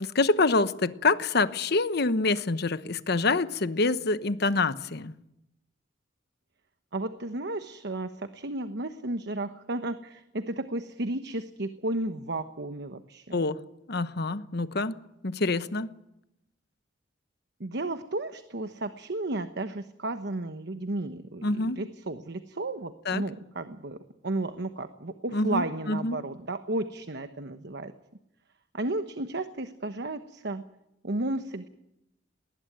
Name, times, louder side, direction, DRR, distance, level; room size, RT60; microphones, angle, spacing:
voice 1, 0.0-5.1 13.3-13.6 13.9-15.0 15.2-15.9 21.4-21.8 23.1-23.2 25.3-26.2, left 3 dB, 60° left, 1.0 m, -26 dB
voice 2, 6.9-13.4 17.6-24.0 24.2-27.9 28.7-30.6 31.0-31.7, right 2 dB, 60° right, 1.1 m, -33 dB
20.0 x 19.5 x 9.2 m
head